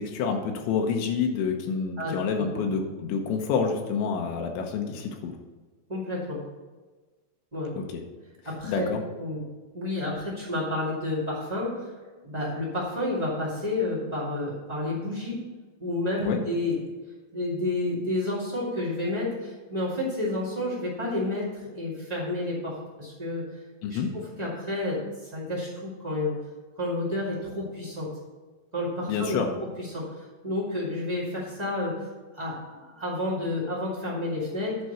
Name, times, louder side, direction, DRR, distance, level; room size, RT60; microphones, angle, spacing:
voice 1, 0.0-5.3 7.8-8.0 8.6-9.0 16.2-16.4 23.8-24.1 29.1-29.5, left 6 dB, 85° left, 3 dB, 3.3 m, -28 dB
voice 2, 5.9-6.4 7.5-7.7 8.4-8.9 9.2-9.4 9.7-11.9 12.2-15.4 15.8-16.8 17.3-23.4 23.9-26.3 26.8-28.1 28.7-29.4 29.8-31.9 32.3-34.8, left 2 dB, 35° right, -8 dB, 0.5 m, -30 dB
10.5 x 4.7 x 6.6 m, 1.3 s
omnidirectional pair, 5.1 m